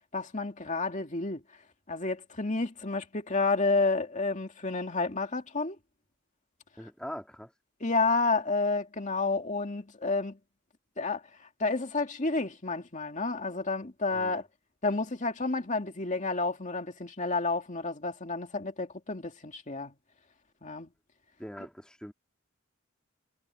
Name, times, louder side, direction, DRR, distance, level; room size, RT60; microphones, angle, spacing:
voice 1, 0.1-1.4 1.9-5.8 7.8-10.4 11.0-11.2 11.6-14.4 14.8-19.9 20.6-20.9, left 3 dB, 40° left, 2.3 m, -30 dB
voice 2, 6.8-7.5 14.1-14.4 21.4-22.1, equal, 5° left, 2.6 m, -42 dB
head